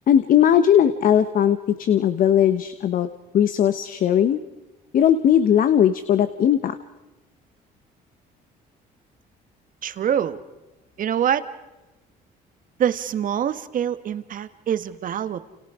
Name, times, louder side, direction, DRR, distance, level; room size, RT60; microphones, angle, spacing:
voice 1, 0.1-3.1 3.3-4.4 4.9-6.8, left 9 dB, 55° left, 11 dB, 1.2 m, -18 dB
voice 2, 9.8-10.4 11.0-11.4 12.8-15.4, right 9 dB, 55° right, 11 dB, 1.6 m, -25 dB
29.5 x 29.5 x 5.0 m, 1.1 s
cardioid pair, 110°, 17 cm